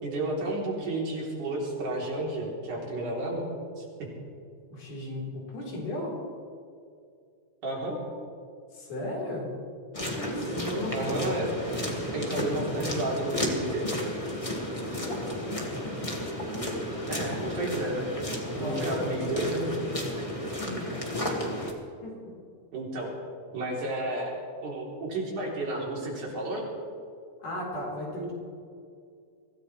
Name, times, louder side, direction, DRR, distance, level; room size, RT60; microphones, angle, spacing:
voice 1, 0.0-3.5 3.8-4.1 7.6-8.0 10.9-11.6 12.1-13.9 16.7-18.1 18.6-19.7 22.7-23.1 23.5-26.7, right 2 dB, 85° right, -3 dB, 5.0 m, -32 dB
voice 2, 4.7-6.2 8.7-9.5 10.0-10.9 14.8-16.0 18.6-19.1 20.6-20.9 22.0-22.2 27.4-28.3, left 1 dB, 90° left, -3 dB, 5.6 m, -36 dB
sound 1, 9.9-21.7, equal, 15° left, 1.5 m, -32 dB
24.0 x 17.0 x 3.3 m, 2.3 s
omnidirectional pair, 3.5 m